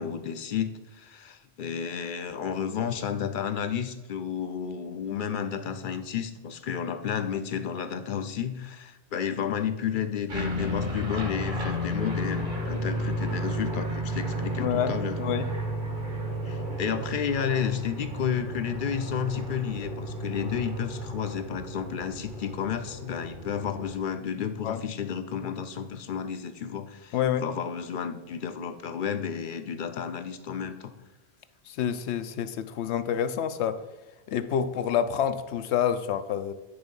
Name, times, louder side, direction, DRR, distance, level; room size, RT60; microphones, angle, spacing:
voice 1, 0.0-15.2 16.4-30.9, left 8 dB, 60° left, 9 dB, 0.6 m, -32 dB
sound 1, 10.3-24.0, equal, 50° right, 1.6 m, -33 dB
voice 2, 14.6-15.5 24.6-24.8 27.1-27.4 31.7-33.8 34.3-36.5, left 9 dB, 90° left, 11 dB, 0.9 m, -28 dB
9.6 x 3.5 x 5.3 m, 1.1 s
omnidirectional pair, 1.1 m